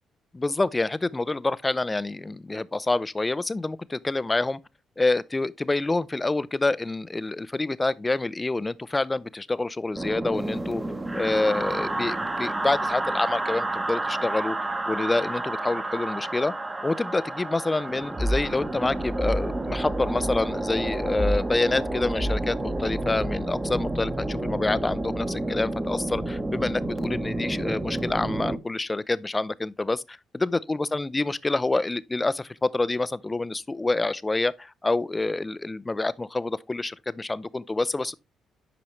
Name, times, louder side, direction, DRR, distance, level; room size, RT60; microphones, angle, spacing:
voice 1, 0.3-4.6 5.0-10.8 11.2-14.6 14.9-16.5 16.8-38.1, left 2 dB, 20° left, 0.4 m, -27 dB
sound 1, 9.9-28.6, right 1 dB, 20° right, 0.9 m, -29 dB
8.7 x 5.1 x 3.1 m
cardioid pair, 90°, 0 cm